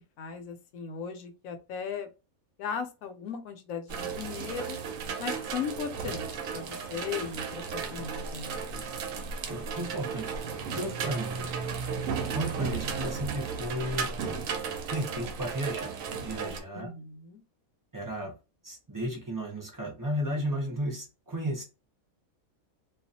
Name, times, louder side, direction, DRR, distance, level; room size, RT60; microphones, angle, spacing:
voice 1, 0.2-2.1 2.6-4.8 5.2-8.6 16.7-17.4, left 6 dB, 75° left, 7 dB, 1.0 m, -37 dB
sound 1, 3.9-16.6, right 5 dB, 75° right, 0.9 m, -34 dB
voice 2, 9.5-10.3 10.7-11.5 12.3-14.4 14.9-16.9 17.9-18.3 18.6-21.6, right 1 dB, 30° right, -1 dB, 0.4 m, -34 dB
2.3 x 2.3 x 2.6 m, 0.29 s
omnidirectional pair, 1.5 m